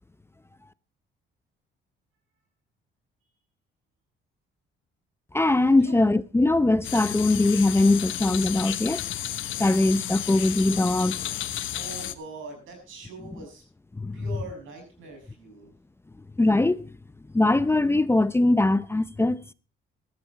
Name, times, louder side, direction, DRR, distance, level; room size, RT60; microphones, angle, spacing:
voice 1, 5.3-9.0 9.6-11.2 14.0-14.2 16.4-16.9 17.3-19.4, left 2 dB, 10° left, 0.6 m, -21 dB
sound 1, 6.8-12.1, left 12 dB, 80° left, 1.0 m, -32 dB
voice 2, 11.7-13.6 14.1-15.7, right 3 dB, 85° right, 6.6 m, -42 dB
15.0 x 13.0 x 4.1 m
cardioid pair, 90°, 20 cm